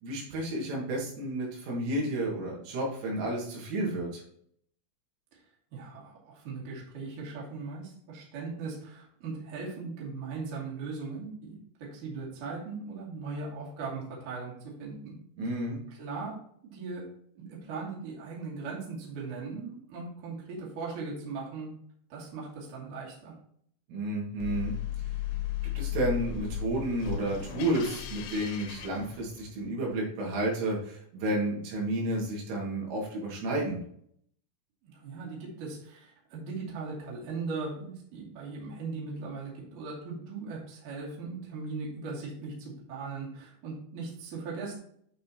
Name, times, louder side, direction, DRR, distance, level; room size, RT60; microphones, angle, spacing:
voice 1, 0.0-4.2 15.4-15.8 23.9-24.7 25.8-33.8, right 1 dB, 75° right, -3 dB, 4.5 m, -31 dB
voice 2, 5.7-14.5 14.8-15.1 15.9-16.3 16.7-17.0 17.3-21.7 22.1-23.3 34.8-44.8, right 4 dB, 50° right, -5 dB, 3.3 m, -39 dB
sound 1, 24.4-29.7, left 10 dB, 75° left, 3.2 m, -35 dB
8.9 x 5.5 x 2.8 m, 0.65 s
omnidirectional pair, 5.8 m